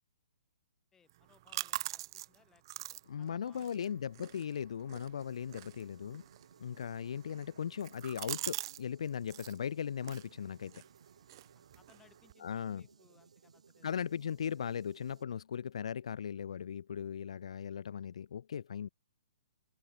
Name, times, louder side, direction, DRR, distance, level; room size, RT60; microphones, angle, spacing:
voice 1, 0.9-2.6 2.9-3.9 11.5-13.9, left 7 dB, 15° left, 5.0 m, -67 dB
sound 1, 1.1-8.8 9.1-9.6 10.0-12.3, right 15 dB, 40° right, 0.6 m, -45 dB
voice 2, 3.1-6.2 6.6-10.8 12.4-12.8 13.8-18.9, left 8 dB, 60° left, 0.6 m, -38 dB
sound 2, 5.2-15.2, right 6 dB, 70° right, 7.1 m, -63 dB
figure-of-eight pair, 125°, 4 cm